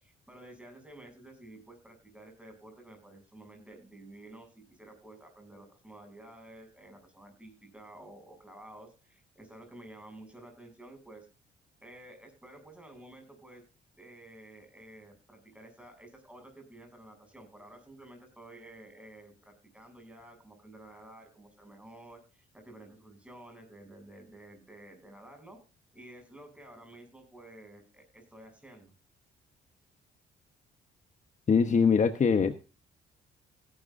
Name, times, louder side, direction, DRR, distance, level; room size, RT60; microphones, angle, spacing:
voice 1, 0.0-11.3 11.8-13.6 14.0-25.6 25.9-28.9, right 1 dB, 5° right, 3 dB, 7.5 m, -51 dB
voice 2, 31.5-32.6, left 5 dB, 35° left, 8 dB, 1.2 m, -23 dB
17.0 x 12.0 x 2.7 m, 0.34 s
cardioid pair, 90°, 20 cm